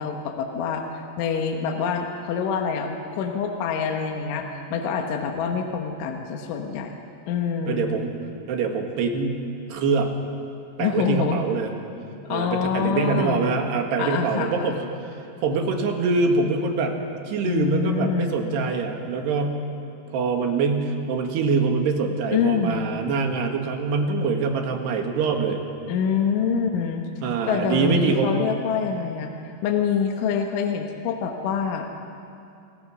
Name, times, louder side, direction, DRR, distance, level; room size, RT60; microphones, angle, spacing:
voice 1, 0.0-7.0 7.3-8.0 10.8-11.4 12.3-13.4 14.0-14.8 17.4-18.4 22.3-22.9 25.9-27.1 27.5-31.9, left 6 dB, 70° left, 3 dB, 3.6 m, -26 dB
voice 2, 7.7-8.1 8.5-9.4 9.7-10.1 10.8-11.7 12.3-14.8 15.4-17.0 17.3-19.6 20.1-25.6 27.2-28.4, right 4 dB, 60° right, 3 dB, 3.5 m, -24 dB
29.0 x 23.0 x 6.3 m, 2.7 s
omnidirectional pair, 6.0 m